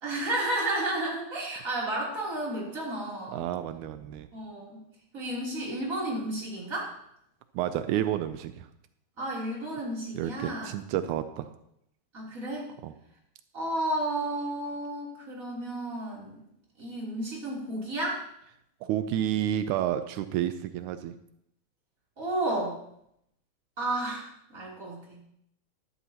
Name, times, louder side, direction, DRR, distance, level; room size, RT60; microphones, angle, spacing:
voice 1, 0.0-3.4 4.3-4.8 5.1-6.9 9.2-10.7 12.1-12.7 13.5-16.4 16.8-18.2 22.2-22.8 23.8-25.2, right 1 dB, 25° right, -4 dB, 3.5 m, -32 dB
voice 2, 3.3-4.3 7.5-8.7 10.2-11.5 12.8-12.9 18.8-21.1, right 11 dB, 85° right, 10 dB, 2.0 m, -30 dB
16.0 x 11.0 x 2.9 m, 0.75 s
omnidirectional pair, 3.4 m